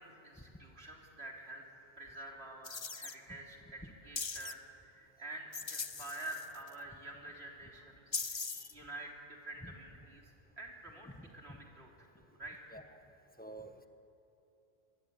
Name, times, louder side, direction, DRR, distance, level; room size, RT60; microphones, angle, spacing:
voice 1, 0.0-1.7 2.0-8.4 8.7-10.3 10.6-12.8, right 1 dB, 75° right, 0 dB, 4.1 m, -48 dB
sound 1, 2.6-3.1 4.2-4.5 5.5-6.7 8.1-8.7, left 4 dB, 30° left, 0.7 m, -40 dB
voice 2, 11.2-11.6 12.7-12.8 13.4-13.9, right 1 dB, 10° left, 6 dB, 1.5 m, -50 dB
25.0 x 22.5 x 9.7 m, 2.8 s
omnidirectional pair, 1.1 m